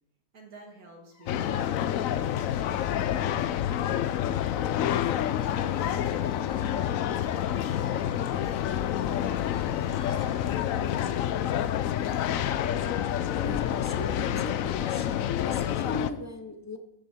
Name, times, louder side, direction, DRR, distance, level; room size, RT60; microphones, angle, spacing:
voice 1, 0.3-1.7 2.1-4.1 4.8-6.6 7.1-11.2, right 1 dB, 70° right, 1 dB, 2.8 m, -50 dB
sound 1, 1.1-16.1, left 4 dB, 85° left, 1.5 m, -51 dB
sound 2, 1.3-16.1, left 10 dB, 70° left, 0.9 m, -28 dB
voice 2, 13.4-15.1 15.4-16.8, left 2 dB, 20° left, 7 dB, 0.5 m, -38 dB
14.0 x 8.3 x 4.3 m, 0.86 s
omnidirectional pair, 1.6 m